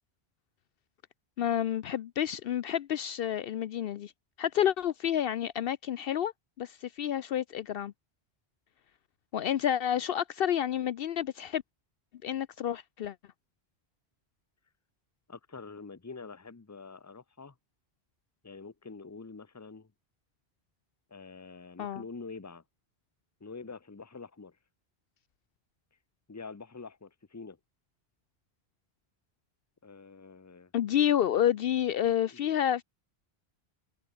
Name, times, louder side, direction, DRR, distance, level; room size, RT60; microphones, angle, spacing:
voice 1, 1.4-4.1 4.4-6.3 6.6-7.9 9.3-11.6 12.2-13.2 21.8-22.0 30.7-32.8, left 10 dB, 70° left, 0.7 m, -29 dB
voice 2, 15.3-17.5 18.4-19.9 21.1-22.6 23.4-24.6 26.3-27.6 29.8-30.7 32.3-32.4, left 4 dB, 15° left, 0.9 m, -46 dB
omnidirectional pair, 1.1 m